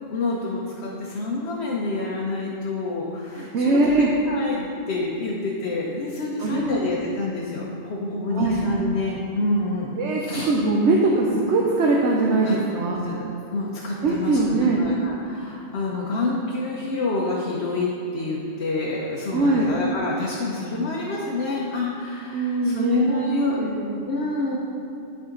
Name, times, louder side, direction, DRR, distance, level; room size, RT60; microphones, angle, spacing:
voice 1, 0.1-9.9 10.2-10.5 12.4-12.6 13.0-13.3 13.5-23.6 24.1-24.6, left 2 dB, 70° left, -4 dB, 1.1 m, -28 dB
voice 2, 3.4-4.1 6.4-6.8 8.3-8.7 10.0-13.0 14.0-14.9 19.3-19.7 22.3-24.1, right 2 dB, 80° right, -2 dB, 1.0 m, -21 dB
11.5 x 4.9 x 3.8 m, 2.6 s
omnidirectional pair, 1.2 m